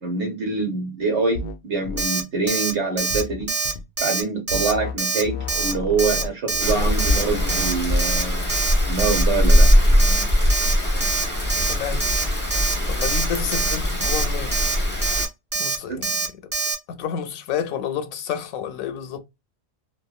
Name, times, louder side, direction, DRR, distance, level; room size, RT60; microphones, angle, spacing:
voice 1, 0.0-3.5 4.0-8.5 8.9-9.7 15.9-16.0, right 3 dB, 60° right, 1.2 m, -25 dB
sound 1, 1.3-1.6 1.8-2.1 3.1-3.8 4.5-5.0 5.2-7.7, left 2 dB, 60° left, 0.6 m, -31 dB
Alarm, 2.0-2.2 2.5-2.7 3.0-3.2 3.5-3.7 4.0-4.2 4.5-4.7 5.0-5.2 5.5-5.7 6.0-6.2 6.5-6.7 7.0-7.2 7.5-7.7 8.0-8.2 8.5-8.7 9.0-9.2 9.5-9.7 10.0-10.2 10.5-10.7 11.0-11.2 11.5-11.7 12.0-12.2 12.5-12.7 13.0-13.2 13.5-13.7 14.0-14.2 14.5-14.7 15.0-15.2 15.5-15.8 16.0-16.3 16.5-16.7, right 4 dB, 35° right, 0.3 m, -24 dB
Rain, 6.6-15.3, equal, 10° left, 0.7 m, -21 dB
voice 2, 11.7-12.1 12.9-14.6 15.6-16.2 16.9-19.2, left 8 dB, 90° left, 1.0 m, -30 dB
3.2 x 2.1 x 2.3 m
omnidirectional pair, 1.4 m